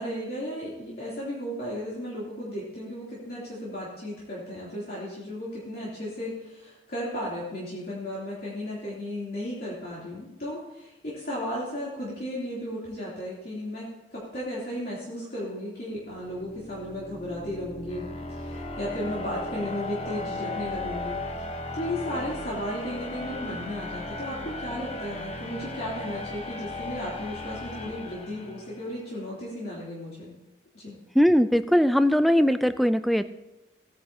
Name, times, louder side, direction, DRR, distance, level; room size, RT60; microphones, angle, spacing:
voice 1, 0.0-30.3 30.7-31.0, left 1 dB, 55° left, -8 dB, 3.0 m, -35 dB
sound 1, 16.1-29.0, left 2 dB, 35° left, 1.0 m, -36 dB
voice 2, 31.2-33.3, equal, ahead, 12 dB, 0.3 m, -20 dB
17.5 x 10.0 x 2.8 m, 0.96 s
head